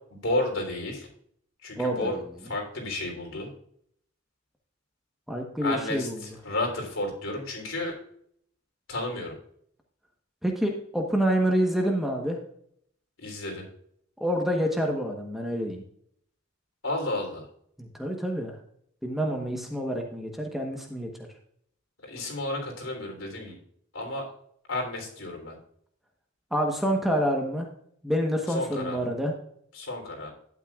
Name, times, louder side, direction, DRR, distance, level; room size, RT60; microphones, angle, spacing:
voice 1, 0.1-1.1 1.6-2.2 2.4-3.5 5.6-8.0 8.9-9.4 13.2-13.7 16.8-17.4 22.0-23.6 23.9-24.3 24.7-25.6 28.5-29.1 29.7-30.3, left 2 dB, 80° left, 1 dB, 3.4 m, -32 dB
voice 2, 1.8-2.1 5.3-6.2 10.4-12.4 14.2-15.8 17.8-18.5 19.0-21.1 26.5-27.7 28.0-29.3, equal, ahead, 1 dB, 1.1 m, -27 dB
12.0 x 9.1 x 2.4 m, 0.67 s
head